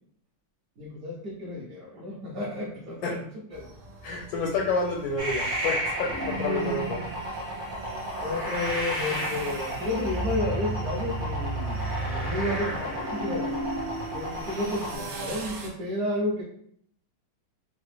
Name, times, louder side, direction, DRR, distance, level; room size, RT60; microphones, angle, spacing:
voice 1, 0.8-3.2 3.5-3.7 6.5-6.8 8.2-13.5 14.1-16.4, left 1 dB, 65° right, -4 dB, 0.9 m, -32 dB
sound 1, 3.5-15.7, right 2 dB, 80° right, 1.5 m, -43 dB
voice 2, 4.0-7.0, left 3 dB, 75° left, 0 dB, 1.0 m, -29 dB
sound 2, 5.2-14.9, right 1 dB, 35° right, 0.6 m, -31 dB
3.8 x 2.0 x 3.2 m, 0.66 s
omnidirectional pair, 2.2 m